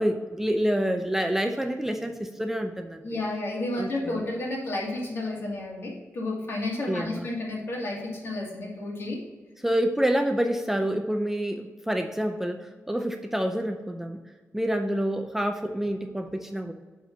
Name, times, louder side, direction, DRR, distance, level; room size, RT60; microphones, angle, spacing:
voice 1, 0.0-3.2 3.8-4.2 6.9-7.3 9.6-14.2 14.5-16.7, equal, 5° right, 5 dB, 0.5 m, -27 dB
voice 2, 3.0-9.2, left 2 dB, 55° left, -2 dB, 2.4 m, -31 dB
7.8 x 4.3 x 6.1 m, 1.3 s
wide cardioid pair, 120°, 5 cm